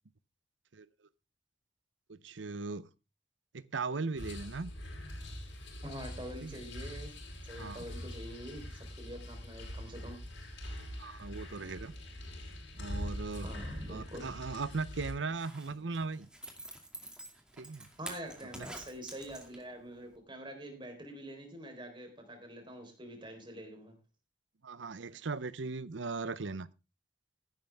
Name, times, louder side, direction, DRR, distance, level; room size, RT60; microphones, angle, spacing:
voice 1, 2.1-2.9 3.5-4.7 6.4-6.6 7.6-7.8 11.0-11.9 12.7-13.5 13.9-16.3 17.6-17.9 18.6-18.7 24.6-26.7, right 4 dB, 80° right, 0.7 m, -38 dB
sound 1, 4.2-15.1, equal, 75° left, 4.7 m, -43 dB
voice 2, 5.8-7.1 7.5-10.2 13.4-14.3 18.0-24.0, equal, 25° right, 4.0 m, -45 dB
Zipper (clothing), 15.2-19.8 20.1-20.2, right 1 dB, 5° right, 2.3 m, -48 dB
14.5 x 11.5 x 3.5 m
head